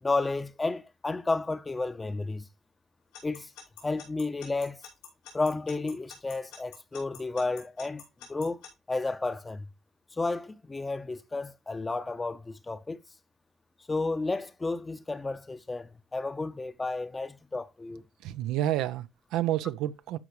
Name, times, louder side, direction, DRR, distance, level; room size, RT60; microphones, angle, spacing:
voice 1, 0.0-2.5 3.2-3.5 3.8-4.8 5.3-8.0 8.3-9.7 10.1-13.0 13.9-18.0, left 3 dB, 20° left, 0.8 m, -32 dB
Alarm / Clock, 3.1-8.7, left 8 dB, 90° left, 4.7 m, -46 dB
voice 2, 18.2-20.2, right 13 dB, 75° right, 0.6 m, -29 dB
13.0 x 4.7 x 3.1 m
supercardioid pair, 95°, 0 cm